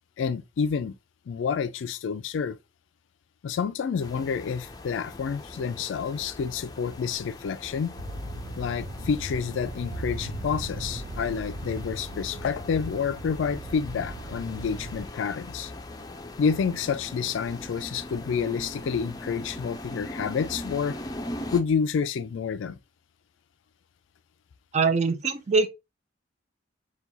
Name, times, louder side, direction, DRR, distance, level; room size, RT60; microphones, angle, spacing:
voice 1, 0.2-0.9 1.3-2.6 3.4-7.9 8.6-15.7 16.4-21.0 21.5-22.8, left 6 dB, 80° left, 0.3 m, -29 dB
sound 1, 4.0-21.6, left 1 dB, 20° left, 0.5 m, -41 dB
sound 2, 8.0-15.1, right 1 dB, 80° right, 0.9 m, -38 dB
voice 2, 24.7-25.7, right 4 dB, 35° right, 0.5 m, -23 dB
4.5 x 2.3 x 3.9 m
head